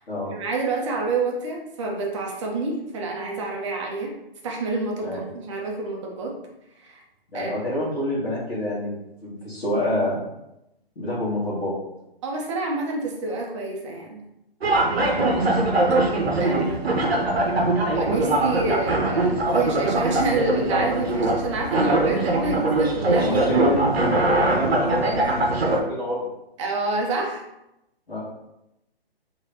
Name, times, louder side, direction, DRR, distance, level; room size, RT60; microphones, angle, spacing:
voice 1, 0.3-4.1 4.4-6.4 6.8-7.0 7.3-7.5 12.2-14.2 16.4-16.8 17.4-23.6 26.6-27.4, right 3 dB, 30° right, 0 dB, 0.6 m, -28 dB
voice 2, 7.3-8.9 9.2-10.2 10.9-11.7 15.0-15.4 23.2-26.3 28.1-28.2, left 1 dB, 75° left, -9 dB, 1.3 m, -27 dB
sound 1, 14.6-25.8, right 2 dB, 80° right, 0.7 m, -22 dB
3.2 x 3.0 x 2.7 m, 0.88 s
figure-of-eight pair, 135°, 31 cm